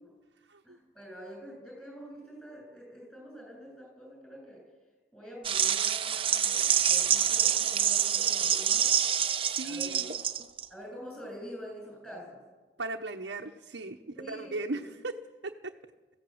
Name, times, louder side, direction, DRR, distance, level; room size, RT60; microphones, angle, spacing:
voice 1, 0.6-4.7 5.1-8.9 9.6-10.1 10.7-12.4 14.0-14.9, equal, 5° left, -1 dB, 7.9 m, -46 dB
sound 1, 5.4-10.6, right 9 dB, 30° right, 0.9 m, -26 dB
voice 2, 9.4-10.1 12.8-15.1 15.4-15.7, right 2 dB, 85° right, 0 dB, 1.1 m, -37 dB
24.0 x 15.5 x 7.9 m, 1.3 s
head